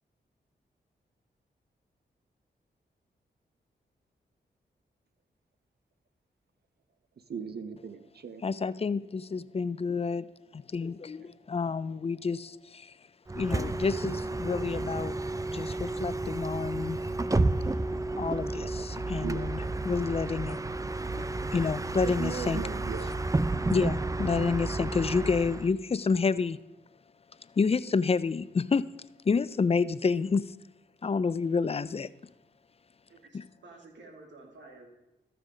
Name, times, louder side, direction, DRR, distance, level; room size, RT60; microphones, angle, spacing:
voice 1, 7.3-8.4 11.2-11.3 19.2-19.5 22.0-23.1, right 6 dB, 60° right, 11 dB, 0.8 m, -38 dB
voice 2, 8.4-10.3 10.5-12.9 13.3-15.2 15.5-17.0 18.2-20.6 21.1-21.2 21.5-22.6 23.7-26.6 27.6-28.8 29.3-30.5 31.0-32.1 33.3-33.4, left 5 dB, 35° left, 16 dB, 0.5 m, -29 dB
Bus, 13.3-25.7, right 2 dB, 20° right, 0.5 m, -31 dB
voice 3, 33.1-34.9, right 2 dB, 80° right, 2 dB, 2.1 m, -51 dB
13.5 x 6.0 x 5.1 m, 0.95 s
cardioid pair, 55°, 18 cm